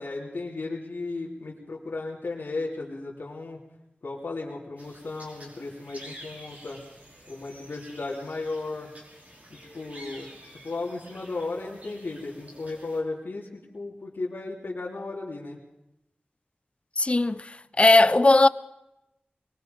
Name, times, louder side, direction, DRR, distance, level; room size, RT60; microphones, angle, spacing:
voice 1, 0.0-3.6 4.0-6.8 7.3-8.9 9.5-10.3 10.6-15.6, left 3 dB, 70° left, 3.3 m, -35 dB
sound 1, 4.8-13.0, equal, 45° right, 5.3 m, -49 dB
voice 2, 17.0-18.5, left 2 dB, 35° left, 0.6 m, -18 dB
23.0 x 21.0 x 5.3 m
wide cardioid pair, 85°, 4 cm